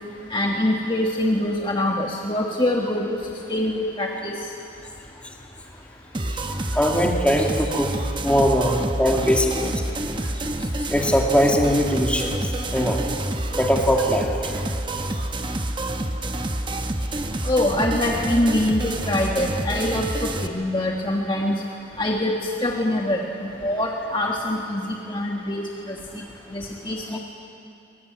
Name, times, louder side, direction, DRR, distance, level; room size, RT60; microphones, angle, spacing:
voice 1, 0.3-3.1 3.5-4.4 17.4-21.5 22.0-26.0 26.5-27.2, left 1 dB, 25° left, 0 dB, 1.5 m, -24 dB
sound 1, 6.1-20.5, right 1 dB, 25° right, 1.0 m, -28 dB
voice 2, 6.5-7.9 8.2-9.8 10.9-13.0 13.5-14.4, equal, 5° left, 0 dB, 2.1 m, -21 dB
23.5 x 21.0 x 9.4 m, 2.7 s
head